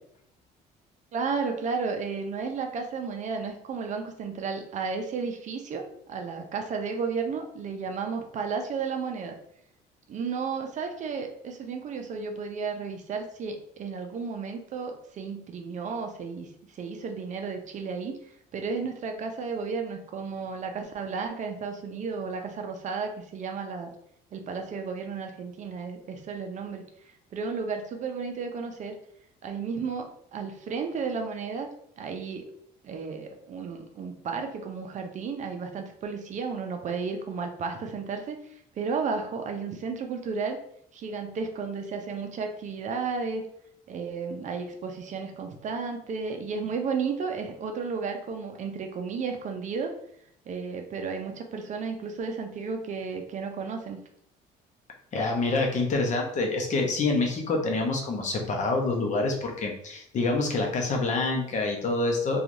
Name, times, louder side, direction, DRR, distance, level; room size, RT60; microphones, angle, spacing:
voice 1, 1.1-5.8 6.1-9.4 10.1-18.2 18.5-23.9 24.3-29.0 29.4-31.7 32.0-32.5 32.8-40.6 40.9-43.4 43.9-49.9 50.5-54.0, right 5 dB, 45° right, 4 dB, 0.5 m, -33 dB
voice 2, 55.1-62.4, left 3 dB, 45° left, 1 dB, 0.7 m, -26 dB
3.0 x 2.3 x 2.5 m, 0.69 s
cardioid pair, 110°, 17 cm